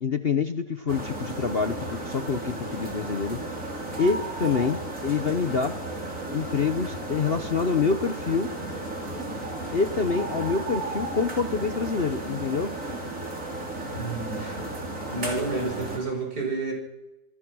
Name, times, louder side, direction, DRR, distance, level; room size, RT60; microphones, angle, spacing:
voice 1, 0.0-3.4 4.0-5.8 6.3-8.5 9.7-12.7, left 5 dB, 40° left, 9 dB, 1.0 m, -26 dB
sound 1, 0.9-16.0, right 2 dB, 45° right, 5.3 m, -34 dB
voice 2, 13.9-14.7 15.1-16.7, right 3 dB, 65° right, 2 dB, 6.8 m, -30 dB
27.5 x 21.0 x 6.3 m, 0.95 s
omnidirectional pair, 1.9 m